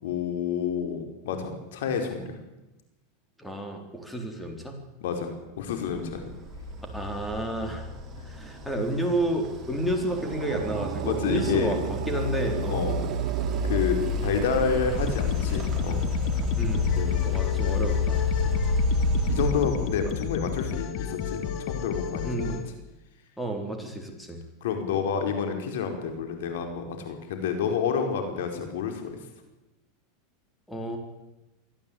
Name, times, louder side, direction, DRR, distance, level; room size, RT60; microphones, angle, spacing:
voice 1, 0.0-2.3 5.0-5.3 5.6-6.3 11.0-11.7 12.7-13.0 13.6-16.0 16.9-17.4 18.4-18.6 19.3-22.5 24.6-29.2, left 6 dB, 80° left, 6 dB, 4.8 m, -29 dB
voice 2, 3.4-4.8 6.9-7.9 8.2-12.9 16.6-16.9 17.2-18.2 20.0-20.1 22.2-22.6 23.4-24.4 30.7-31.0, right 1 dB, 5° left, 3 dB, 4.0 m, -31 dB
sound 1, 5.9-20.4, left 2 dB, 25° right, 3.5 m, -29 dB
sound 2, 9.7-16.9, right 15 dB, 65° right, 1.1 m, -37 dB
sound 3, 14.9-22.6, left 8 dB, 50° left, 2.3 m, -32 dB
23.5 x 14.5 x 8.7 m, 1.0 s
supercardioid pair, 130°, 0 cm